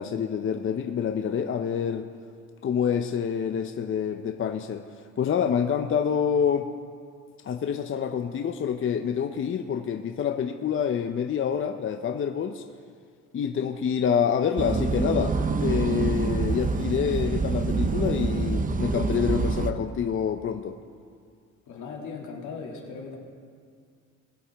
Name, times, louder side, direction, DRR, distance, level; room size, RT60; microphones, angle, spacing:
voice 1, 0.0-2.1 2.6-4.8 5.2-6.7 7.4-12.6 13.3-20.8, left 7 dB, 45° left, 7 dB, 0.6 m, -27 dB
sound 1, 14.6-19.7, right 4 dB, 25° right, 0.7 m, -26 dB
voice 2, 21.7-23.2, left 5 dB, 80° left, -1 dB, 2.3 m, -38 dB
20.5 x 8.4 x 3.5 m, 2.1 s
cardioid pair, 90°, 30 cm